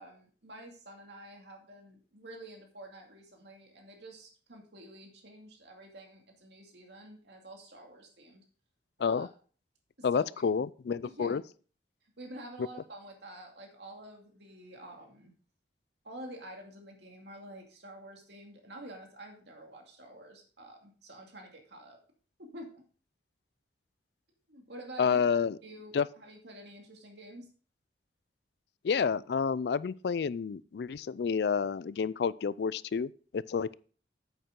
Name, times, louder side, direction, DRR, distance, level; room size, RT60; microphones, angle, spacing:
voice 1, 0.0-8.4 9.0-9.3 10.0-10.3 11.0-11.4 12.2-15.3 16.0-22.0 22.4-22.8 24.5-27.5, right 1 dB, 70° right, 2.4 m, -49 dB
voice 2, 10.0-11.4 25.0-25.6 25.9-26.1 28.8-33.7, left 6 dB, 60° left, 0.3 m, -29 dB
8.9 x 8.2 x 3.8 m
head